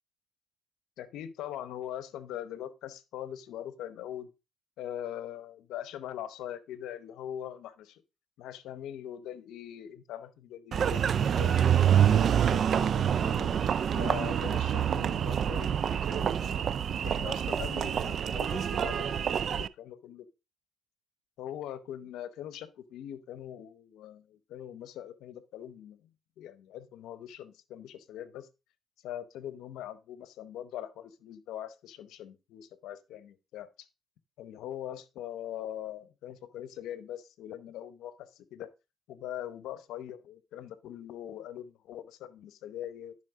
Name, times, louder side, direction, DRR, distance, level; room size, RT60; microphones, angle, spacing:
voice 1, 1.0-4.3 4.8-8.0 8.4-13.5 13.9-16.6 17.0-20.3 21.4-26.0 26.4-28.5 29.0-33.9 34.4-38.7 39.1-43.2, left 11 dB, 90° left, 0.8 m, -42 dB
Engine, 10.7-19.7, right 9 dB, 60° right, 0.3 m, -27 dB
10.5 x 5.5 x 3.6 m
cardioid pair, 90°, 0 cm